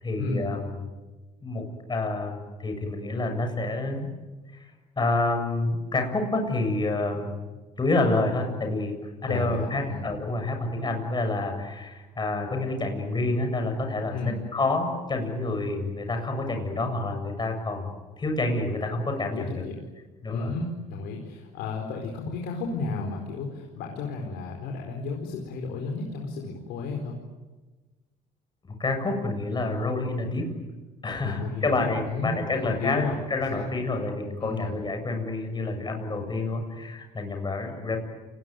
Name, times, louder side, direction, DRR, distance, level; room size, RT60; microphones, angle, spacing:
voice 1, 0.0-0.8 1.4-4.1 4.5-4.7 5.0-7.3 7.8-14.2 14.5-17.9 18.2-19.6 20.2-20.5 28.8-30.5 31.0-38.0, left 2 dB, 25° left, 4 dB, 7.8 m, -28 dB
voice 2, 9.3-10.0 14.1-14.4 19.4-19.8 20.3-27.2 31.2-33.1 33.5-33.7 34.4-34.7, left 4 dB, 85° left, 1 dB, 4.6 m, -33 dB
30.0 x 20.5 x 9.3 m, 1.2 s
cardioid pair, 110°, 17 cm